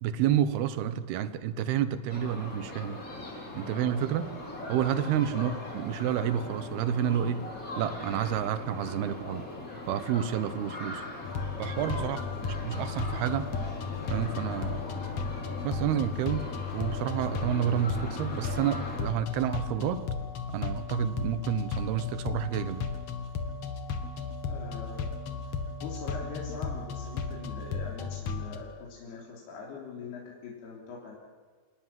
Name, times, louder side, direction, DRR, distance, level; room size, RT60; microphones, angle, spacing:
voice 1, 0.0-3.0 3.6-4.3 4.7-7.4 7.8-9.5 9.9-11.0 11.6-12.2 12.6-13.5 14.1-14.8 15.6-16.5 16.7-20.1 20.5-22.9, right 10 dB, 80° right, 12 dB, 3.1 m, -29 dB
sound 1, 2.1-19.0, left 2 dB, 20° left, 3.8 m, -40 dB
sound 2, 11.2-28.6, left 5 dB, 55° left, 2.0 m, -35 dB
voice 2, 24.4-25.2 25.5-31.2, left 4 dB, 80° left, -3 dB, 5.5 m, -42 dB
27.0 x 19.5 x 7.6 m, 1.4 s
omnidirectional pair, 4.5 m